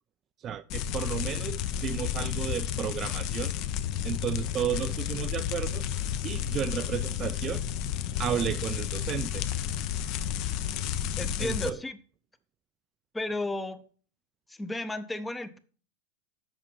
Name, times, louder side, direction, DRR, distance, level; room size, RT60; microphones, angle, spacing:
voice 1, 0.4-3.5 4.0-5.8 6.2-7.6 8.2-9.5 11.4-11.8, right 9 dB, 30° right, 0.4 m, -33 dB
sound 1, 0.7-11.7, left 9 dB, 50° left, 0.6 m, -31 dB
voice 2, 11.2-12.0 13.1-13.8 14.5-15.6, left 2 dB, 10° left, 0.6 m, -33 dB
7.4 x 5.4 x 5.4 m
hypercardioid pair, 125°, 0 cm